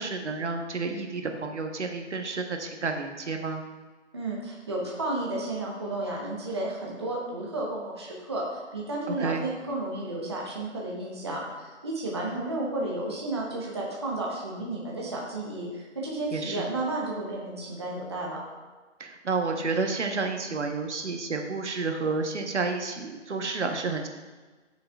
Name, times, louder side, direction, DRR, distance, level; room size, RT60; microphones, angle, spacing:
voice 1, 0.0-3.6 9.1-9.4 16.3-16.7 19.0-24.1, right 4 dB, 70° right, 4 dB, 1.1 m, -30 dB
voice 2, 4.1-18.4, right 2 dB, 20° right, -3 dB, 0.8 m, -32 dB
12.0 x 6.6 x 2.3 m, 1.3 s
hypercardioid pair, 170°, 37 cm